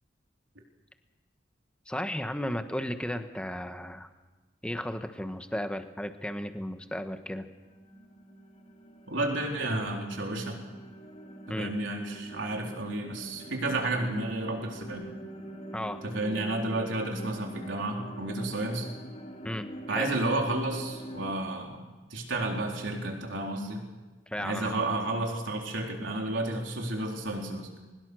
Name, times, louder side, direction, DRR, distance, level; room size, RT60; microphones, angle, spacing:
voice 1, 1.9-4.1 4.6-7.5 11.5-11.7 15.7-16.0 19.4-20.1 24.3-24.8, equal, 5° left, 8 dB, 1.2 m, -34 dB
sound 1, 7.2-21.4, right 1 dB, 35° left, 2.6 m, -45 dB
voice 2, 9.1-10.6 11.5-15.1 16.0-18.9 19.9-21.8 22.1-23.8 24.4-27.7, right 2 dB, 75° right, 1 dB, 4.0 m, -31 dB
22.5 x 20.5 x 6.4 m, 1.3 s
head